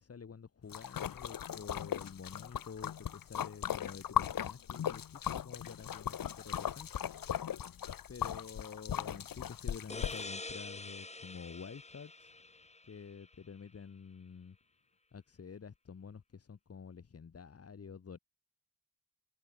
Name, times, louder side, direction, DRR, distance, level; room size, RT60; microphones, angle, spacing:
voice 1, 0.0-6.9 8.1-12.3 12.9-14.6 15.1-18.2, left 6 dB, 45° left, 4.1 m, -49 dB
Splash splatter, 0.7-10.2, left 9 dB, 75° left, 2.3 m, -38 dB
sound 1, 9.9-13.3, left 3 dB, 20° left, 3.8 m, -46 dB
wide cardioid pair, 150°, 34 cm